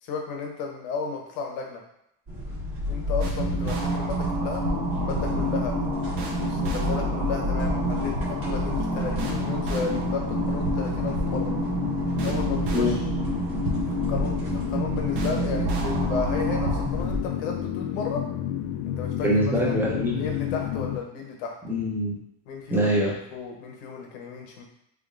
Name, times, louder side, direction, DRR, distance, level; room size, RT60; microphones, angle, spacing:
voice 1, 0.0-1.8 2.9-4.7 5.0-5.7 6.4-11.5 12.2-13.0 14.1-18.3 18.9-19.3 19.6-19.7 20.0-21.5 22.5-24.6, left 5 dB, 80° left, 1 dB, 1.0 m, -34 dB
sound 1, 2.3-17.2, left 1 dB, 35° right, 1.3 m, -33 dB
sound 2, 3.2-16.9, right 2 dB, 80° right, 0.8 m, -29 dB
sound 3, 4.7-21.0, left 11 dB, 65° left, 0.5 m, -32 dB
voice 2, 19.2-20.2 21.7-22.2 22.7-23.1, equal, 5° right, -4 dB, 0.5 m, -23 dB
3.6 x 3.5 x 2.5 m, 0.76 s
cardioid pair, 160°, 37 cm